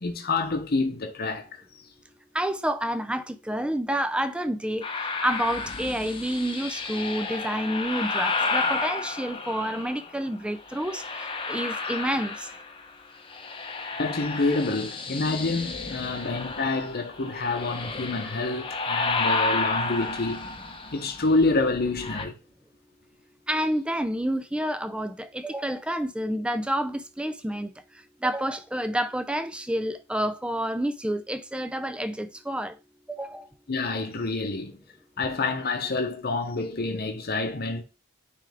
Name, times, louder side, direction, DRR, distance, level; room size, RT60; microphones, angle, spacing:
voice 1, 0.0-1.6 14.0-20.5 20.9-22.4 33.7-34.8 35.2-37.8, left 3 dB, 45° left, 0.9 m, -27 dB
voice 2, 2.3-4.9 5.2-12.5 23.5-27.7 28.2-32.7 33.1-33.5, right 1 dB, 5° right, 0.4 m, -29 dB
sound 1, 4.8-10.1 10.7-12.9 13.2-22.2, left 3 dB, 25° left, 0.8 m, -31 dB
9.2 x 3.4 x 3.5 m
head